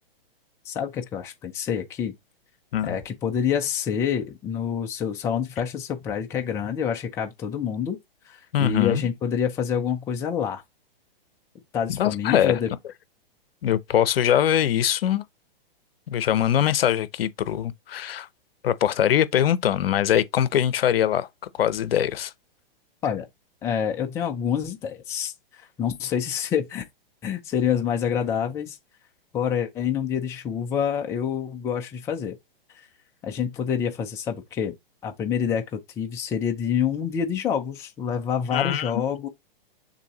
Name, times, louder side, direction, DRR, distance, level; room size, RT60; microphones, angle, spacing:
voice 1, 0.7-2.1 2.8-8.0 8.3-10.6 11.7-12.7 23.0-23.3 23.6-26.8 27.2-28.8 29.3-32.4 33.2-34.7 35.0-39.3, left 8 dB, 10° left, 0.4 m, -27 dB
voice 2, 8.5-9.1 11.9-12.6 13.6-15.2 16.1-18.3 18.6-21.3 21.6-22.3 38.5-38.9, left 10 dB, 75° left, 0.7 m, -22 dB
6.7 x 2.7 x 2.9 m
hypercardioid pair, 140°, 29 cm